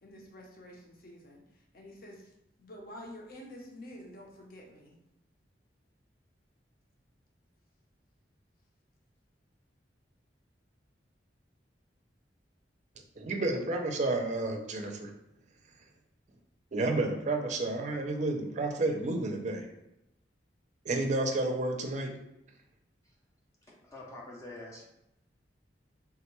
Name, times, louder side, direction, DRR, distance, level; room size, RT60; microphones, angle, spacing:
voice 1, 0.0-2.3 2.6-5.0, left 1 dB, 55° left, 0 dB, 0.7 m, -49 dB
voice 2, 13.2-15.1 16.7-19.7 20.9-22.1, right 2 dB, 40° right, 3 dB, 0.4 m, -31 dB
voice 3, 23.7-24.8, left 2 dB, 20° left, -3 dB, 0.4 m, -46 dB
3.5 x 2.1 x 3.0 m, 0.84 s
head